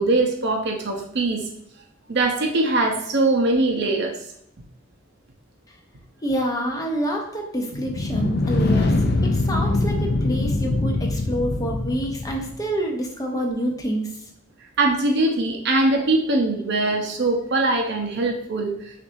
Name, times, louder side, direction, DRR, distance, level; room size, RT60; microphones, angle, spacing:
voice 1, 0.0-1.4 2.1-4.1 14.8-18.7, right 2 dB, 60° right, 2 dB, 0.7 m, -21 dB
voice 2, 6.2-8.9 9.2-14.1, right 1 dB, 20° left, 1 dB, 0.7 m, -27 dB
sound 1, 7.7-12.6, left 2 dB, 55° left, 0.4 m, -23 dB
5.9 x 2.6 x 2.7 m, 0.74 s
head